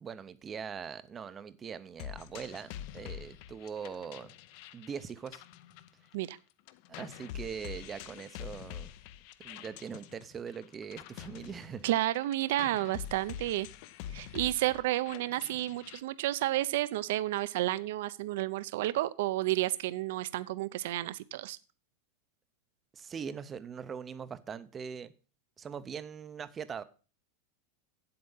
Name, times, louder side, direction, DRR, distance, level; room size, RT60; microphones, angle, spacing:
voice 1, 0.0-4.4 4.7-5.4 6.9-8.9 9.4-11.9 14.1-14.4 22.9-25.1 25.6-26.8, right 7 dB, 15° right, 0.5 m, -42 dB
sound 1, 2.0-6.4 6.7-16.0, left 11 dB, 45° left, 0.6 m, -46 dB
voice 2, 11.8-13.7 14.1-21.6, right 15 dB, 60° right, 0.5 m, -31 dB
8.6 x 7.9 x 5.5 m
supercardioid pair, 175°, 0 cm